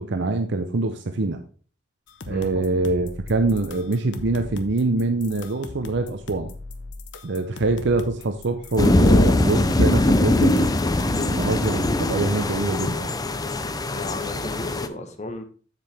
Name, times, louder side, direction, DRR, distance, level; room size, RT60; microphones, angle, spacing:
voice 1, 0.0-1.4 2.3-6.5 7.2-10.7 11.1-13.2, right 3 dB, 65° right, 7 dB, 0.7 m, -24 dB
sound 1, 2.1-11.8, left 2 dB, 65° left, 0.9 m, -39 dB
voice 2, 2.3-2.7 13.9-15.4, left 2 dB, 35° left, 6 dB, 1.2 m, -35 dB
sound 2, 8.8-14.9, left 1 dB, 20° left, 0.5 m, -21 dB
7.6 x 7.2 x 3.4 m, 0.41 s
head